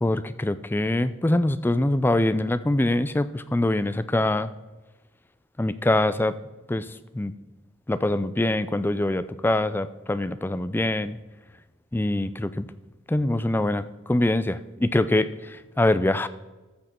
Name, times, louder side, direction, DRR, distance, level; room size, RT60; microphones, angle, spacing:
voice 1, 0.0-4.5 5.6-6.4 6.7-7.3 7.9-11.2 11.9-12.7 13.1-16.3, left 1 dB, 10° left, 13 dB, 0.3 m, -24 dB
14.0 x 6.3 x 4.4 m, 1.2 s
head